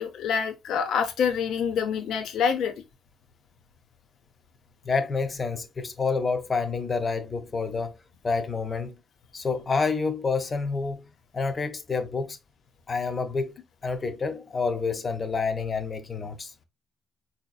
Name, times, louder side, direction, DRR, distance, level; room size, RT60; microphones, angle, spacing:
voice 1, 0.0-2.7, left 7 dB, 75° left, 0.6 m, -26 dB
voice 2, 4.8-7.9 8.2-8.9 9.3-11.1 11.3-12.4 12.9-13.6 13.8-16.5, left 4 dB, 35° left, 0.6 m, -28 dB
3.9 x 2.8 x 2.3 m
cardioid pair, 90°, 0 cm